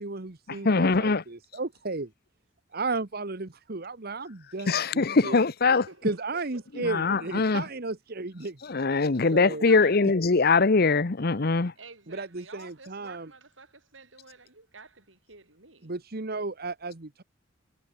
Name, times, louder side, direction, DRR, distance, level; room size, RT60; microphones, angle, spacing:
voice 1, 0.0-2.1 2.7-5.4 6.0-8.6 9.0-9.7 12.1-13.3 15.8-17.2, right 3 dB, 55° right, 1.3 m, -34 dB
voice 2, 0.6-1.2 4.7-5.8 6.8-7.6 8.7-11.7, left 4 dB, 55° left, 0.9 m, -22 dB
voice 3, 5.6-6.8 9.1-10.1 11.8-15.9, right 4 dB, 85° right, 7.7 m, -50 dB
head